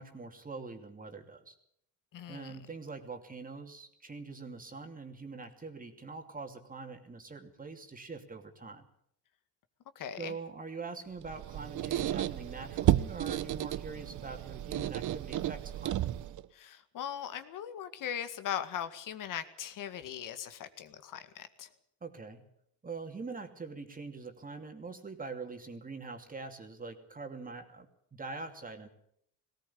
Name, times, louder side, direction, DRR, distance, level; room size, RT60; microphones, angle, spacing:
voice 1, 0.0-1.5 2.3-8.9 10.2-16.0 22.0-22.4 22.8-28.9, right 4 dB, 25° right, 5 dB, 2.8 m, -44 dB
voice 2, 2.1-2.6 10.0-10.4 16.5-21.7, left 9 dB, 60° left, 10 dB, 2.0 m, -39 dB
Squeak, 11.2-16.5, right 13 dB, 55° right, 0.9 m, -32 dB
18.5 x 17.5 x 8.7 m, 0.71 s
cardioid pair, 95°, 35 cm